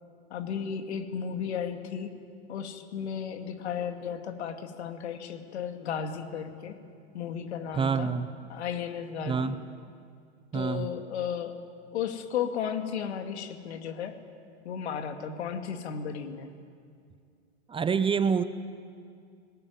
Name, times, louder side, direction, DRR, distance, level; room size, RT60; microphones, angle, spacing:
voice 1, 0.3-2.1 2.5-6.8 7.1-8.1 8.5-9.5 10.5-11.6 11.9-14.2 14.6-16.5, left 7 dB, 75° left, 6 dB, 2.4 m, -34 dB
voice 2, 7.8-8.3 9.3-9.6 10.5-10.9 17.7-18.4, right 6 dB, 15° right, 12 dB, 0.8 m, -26 dB
20.5 x 19.0 x 9.5 m, 2.3 s
hypercardioid pair, 115°, 33 cm